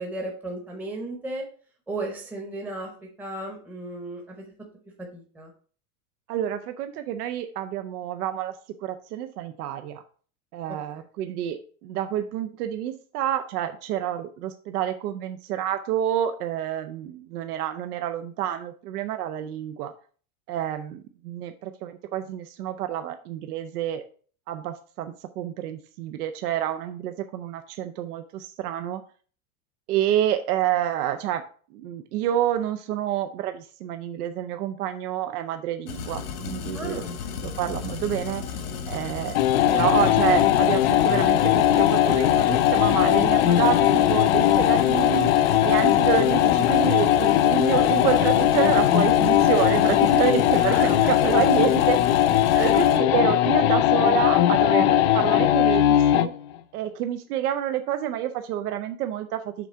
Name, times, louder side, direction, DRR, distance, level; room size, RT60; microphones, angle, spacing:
voice 1, 0.0-1.4 1.9-4.5 5.0-5.5 10.7-10.8 36.7-37.1 50.7-50.9 52.5-52.7, right 2 dB, 5° right, 0 dB, 0.8 m, -34 dB
voice 2, 6.3-8.5 8.8-10.0 10.5-19.9 20.5-24.0 24.5-29.0 29.9-31.4 31.7-37.0 37.4-38.6 38.9-39.4 39.7-45.3 45.6-52.0 52.6-56.3 56.7-59.7, right 11 dB, 85° right, 8 dB, 0.7 m, -28 dB
sound 1, 35.9-53.0, left 6 dB, 80° left, 1.5 m, -34 dB
sound 2, 39.3-56.4, left 12 dB, 50° left, 0.4 m, -19 dB
6.1 x 3.7 x 5.5 m, 0.43 s
supercardioid pair, 155°, 44 cm